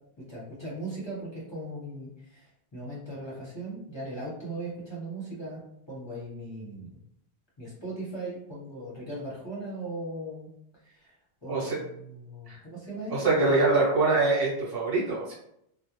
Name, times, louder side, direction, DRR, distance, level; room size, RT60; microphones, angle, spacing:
voice 1, 0.3-7.0 7.6-10.5 10.8-11.2 11.4-13.6, right 1 dB, 30° left, -7 dB, 0.8 m, -38 dB
voice 2, 13.1-15.3, right 3 dB, 65° right, -5 dB, 1.1 m, -24 dB
2.3 x 2.0 x 2.9 m, 0.75 s
omnidirectional pair, 1.1 m